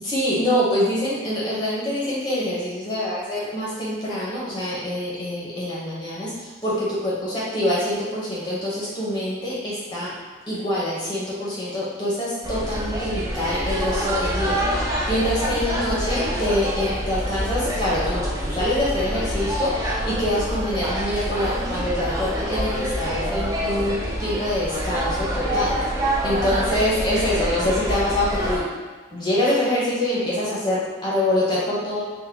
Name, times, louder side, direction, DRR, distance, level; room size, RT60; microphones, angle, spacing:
voice 1, 0.0-10.1 10.5-14.6 14.9-25.7 26.2-28.6 29.1-32.0, left 1 dB, 25° left, -7 dB, 0.6 m, -25 dB
sound 1, 12.4-28.6, equal, 20° right, 0.4 m, -26 dB
3.6 x 2.1 x 3.3 m, 1.4 s
head